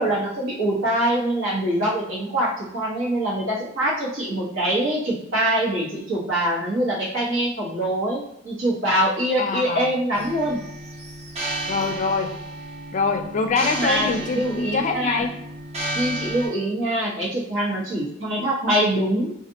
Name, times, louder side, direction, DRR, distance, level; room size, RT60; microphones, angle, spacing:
voice 1, 0.0-10.6 13.6-15.2 15.9-19.3, right 1 dB, 75° right, -4 dB, 1.3 m, -24 dB
voice 2, 9.4-9.9 11.7-12.3 12.9-15.3, left 4 dB, 40° left, 5 dB, 0.4 m, -24 dB
sound 1, 10.1-16.5, right 1 dB, 35° right, 0.7 m, -32 dB
4.9 x 2.4 x 2.8 m, 0.79 s
head